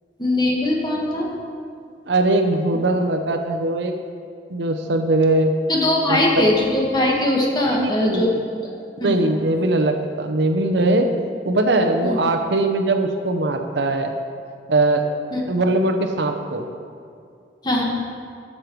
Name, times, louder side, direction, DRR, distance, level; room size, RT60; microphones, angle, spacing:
voice 1, 0.2-1.3 5.7-8.3 8.6-9.2 12.0-12.2 15.3-15.4 17.6-17.8, left 1 dB, 25° left, -2 dB, 1.6 m, -21 dB
voice 2, 2.1-3.9 4.5-5.5 6.1-6.2 7.8-8.2 9.0-11.1 11.5-14.1 14.7-15.1 15.5-16.7, right 2 dB, 80° right, 5 dB, 0.8 m, -20 dB
13.0 x 6.6 x 4.7 m, 2.3 s
head